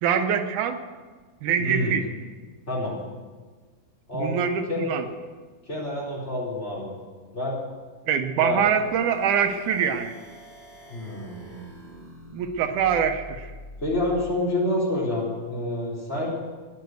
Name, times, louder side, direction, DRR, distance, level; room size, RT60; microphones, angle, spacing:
voice 1, 0.0-0.8 1.4-2.1 4.1-5.0 8.1-10.2 12.3-13.5, right 7 dB, 85° right, 7 dB, 2.4 m, -24 dB
voice 2, 1.6-2.0 2.7-3.0 4.1-4.4 4.7-4.9 5.7-6.9 7.3-7.6 8.4-8.6 10.9-11.6 13.8-16.3, left 1 dB, 20° left, -4 dB, 4.4 m, -28 dB
sound 1, 8.4-14.4, equal, 40° right, 7.6 m, -45 dB
15.0 x 10.5 x 7.9 m, 1.4 s
omnidirectional pair, 3.5 m